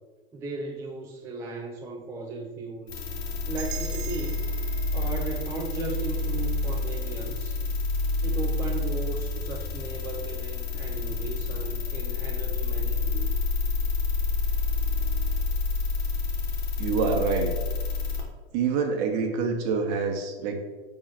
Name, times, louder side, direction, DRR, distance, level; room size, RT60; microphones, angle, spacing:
voice 1, 0.3-3.0 3.5-4.4 4.9-7.6 8.2-13.3, right 3 dB, 10° right, -2 dB, 0.4 m, -36 dB
sound 1, 2.9-18.2, left 4 dB, 75° left, 2.0 m, -28 dB
sound 2, 3.6-7.6, right 11 dB, 75° right, 0.6 m, -45 dB
voice 2, 16.8-17.5 18.5-20.7, right 5 dB, 45° right, 3 dB, 1.2 m, -26 dB
4.7 x 4.0 x 5.6 m, 1.3 s
hypercardioid pair, 130°, 32 cm